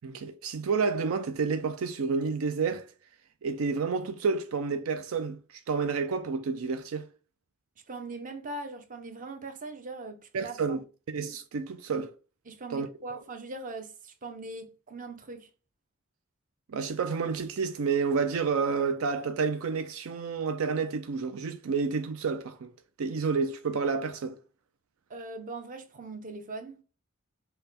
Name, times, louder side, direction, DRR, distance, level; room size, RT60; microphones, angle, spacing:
voice 1, 0.0-2.9 3.4-7.1 10.3-12.1 12.7-13.2 16.7-22.7 23.0-24.4, right 5 dB, 80° right, 0.4 m, -30 dB
voice 2, 7.9-10.8 12.5-15.5 25.1-26.8, right 2 dB, 40° right, 0.8 m, -41 dB
5.5 x 2.2 x 4.1 m
head